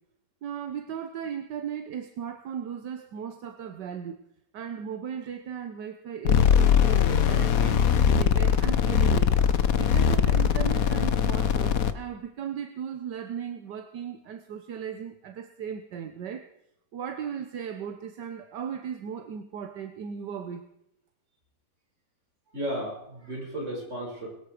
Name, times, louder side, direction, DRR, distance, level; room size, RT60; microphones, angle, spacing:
voice 1, 0.4-4.2 4.5-9.3 9.7-16.5 16.9-20.7, right 8 dB, 80° right, 1.6 m, -37 dB
sound 1, 6.2-11.9, left 7 dB, 60° left, 1.3 m, -21 dB
voice 2, 22.5-24.3, right 1 dB, 40° right, 7.0 m, -34 dB
22.0 x 13.0 x 5.0 m
omnidirectional pair, 1.8 m